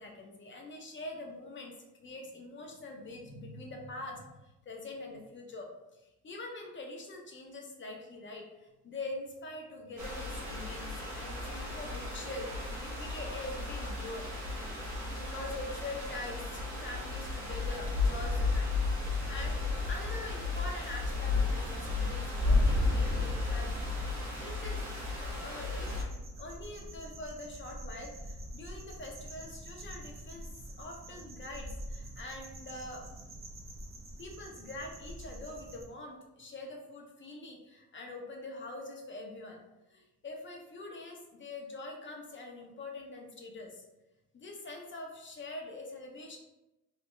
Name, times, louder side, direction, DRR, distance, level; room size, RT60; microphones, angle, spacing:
voice 1, 0.0-5.7 6.2-14.3 15.1-19.6 19.9-24.8 25.1-30.5 30.8-33.0 34.2-39.6 39.9-43.8 44.3-46.4, left 2 dB, 40° left, 1 dB, 0.8 m, -44 dB
sound 1, 10.0-26.0, left 3 dB, 70° right, 1.2 m, -33 dB
sound 2, 25.9-35.9, right 1 dB, 45° right, 0.7 m, -46 dB
3.2 x 2.8 x 3.2 m, 0.96 s
cardioid pair, 90°, 30 cm